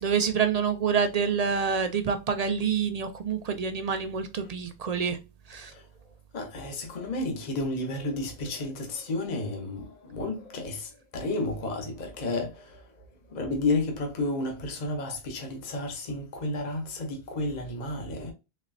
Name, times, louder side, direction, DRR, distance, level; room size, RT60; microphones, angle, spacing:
voice 1, 0.0-5.2 5.5-5.7, right 6 dB, 60° right, 0.4 m, -27 dB
voice 2, 6.3-18.3, left 2 dB, 45° left, 0.9 m, -32 dB
4.0 x 3.0 x 2.6 m
omnidirectional pair, 1.1 m